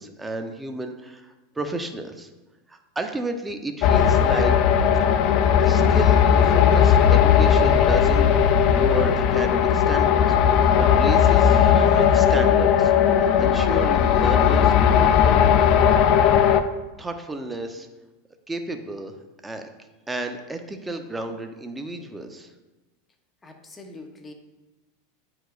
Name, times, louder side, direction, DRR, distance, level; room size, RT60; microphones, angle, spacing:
voice 1, 0.0-2.3 2.7-4.6 5.6-10.4 10.7-12.9 13.2-15.4 17.0-17.9 18.5-19.2 19.4-19.6 20.1-22.5, right 2 dB, 10° right, 5 dB, 0.6 m, -32 dB
sound 1, 3.8-16.6, left 8 dB, 50° left, 0.4 m, -17 dB
voice 2, 23.4-24.3, left 2 dB, 15° left, 4 dB, 0.8 m, -43 dB
8.9 x 4.7 x 2.4 m, 1.1 s
supercardioid pair, 115°, 0 cm